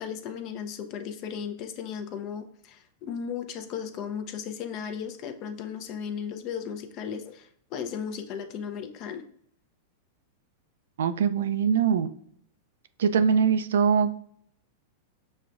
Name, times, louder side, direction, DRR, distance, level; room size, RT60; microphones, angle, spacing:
voice 1, 0.0-9.2, left 7 dB, 45° left, 7 dB, 0.6 m, -36 dB
voice 2, 11.0-12.1 13.0-14.1, right 7 dB, 80° right, 10 dB, 0.3 m, -22 dB
6.2 x 2.3 x 2.4 m, 0.66 s
hypercardioid pair, 115°, 0 cm